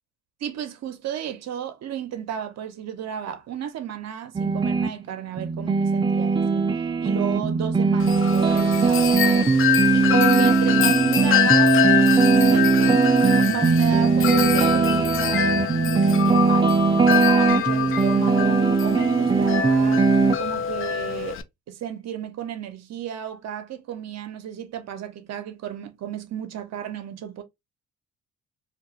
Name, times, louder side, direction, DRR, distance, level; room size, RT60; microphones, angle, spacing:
voice 1, 0.4-6.7 7.0-9.7 9.9-13.0 13.5-15.5 15.8-20.1 20.4-21.4 21.7-27.4, right 10 dB, 60° right, 0.7 m, -33 dB
sound 1, 4.3-4.9 5.4-20.3, right 4 dB, 15° right, 0.4 m, -20 dB
Wind chime, 8.0-21.4, left 10 dB, 45° left, 0.4 m, -25 dB
2.3 x 2.2 x 2.7 m
cardioid pair, 90°, 30 cm